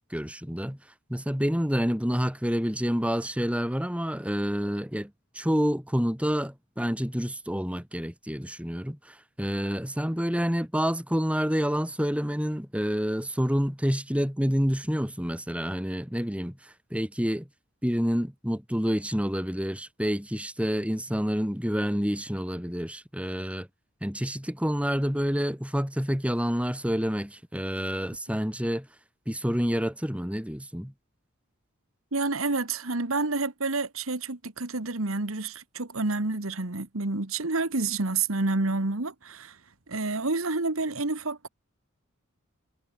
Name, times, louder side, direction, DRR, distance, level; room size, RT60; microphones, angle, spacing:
voice 1, 0.1-0.8 1.1-17.5 17.8-23.7 24.0-28.9 29.3-30.9, equal, 5° right, 4.0 m, -28 dB
voice 2, 32.1-39.6 39.9-41.5, right 3 dB, 75° right, 1.8 m, -29 dB
head